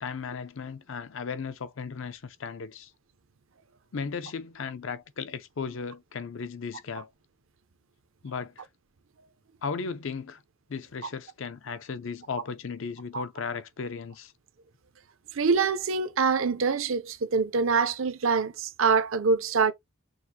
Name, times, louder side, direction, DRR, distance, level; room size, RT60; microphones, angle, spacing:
voice 1, 0.0-2.9 3.9-7.1 8.2-8.7 9.6-10.4 10.7-14.3, left 5 dB, 60° left, 0.5 m, -36 dB
voice 2, 15.3-19.7, right 5 dB, 65° right, 0.5 m, -25 dB
6.2 x 2.4 x 2.7 m
head